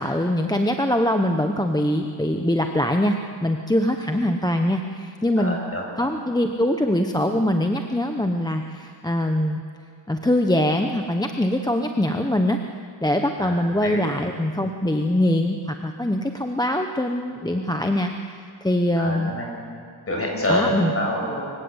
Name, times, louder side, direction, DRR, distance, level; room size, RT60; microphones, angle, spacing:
voice 1, 0.0-5.6 6.0-9.6 10.1-12.6 13.0-19.3 20.5-20.9, left 1 dB, 10° left, 4 dB, 0.9 m, -23 dB
voice 2, 5.4-5.9 13.4-14.0 19.0-19.5 20.1-21.4, left 1 dB, 30° left, -1 dB, 7.3 m, -26 dB
25.0 x 16.0 x 8.1 m, 2.2 s
cardioid pair, 100°, 45 cm